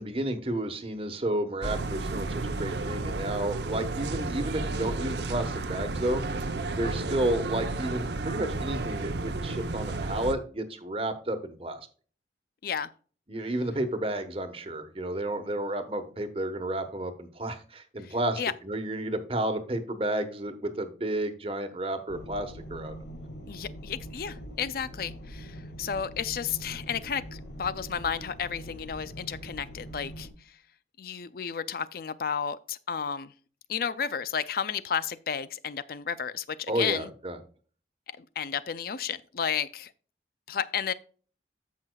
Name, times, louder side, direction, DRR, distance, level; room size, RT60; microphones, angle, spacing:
voice 1, 0.0-6.2 6.8-11.8 13.3-22.9 36.7-37.4, right 1 dB, 30° right, 1.2 m, -31 dB
sound 1, 1.6-10.3, right 3 dB, 65° right, 0.8 m, -32 dB
voice 2, 18.0-18.5 23.5-30.6 31.0-33.3 33.7-37.1 38.2-39.9 40.5-40.9, left 7 dB, 50° left, 0.4 m, -32 dB
sound 2, 22.1-30.3, equal, 75° left, 1.9 m, -43 dB
14.5 x 5.7 x 2.3 m
head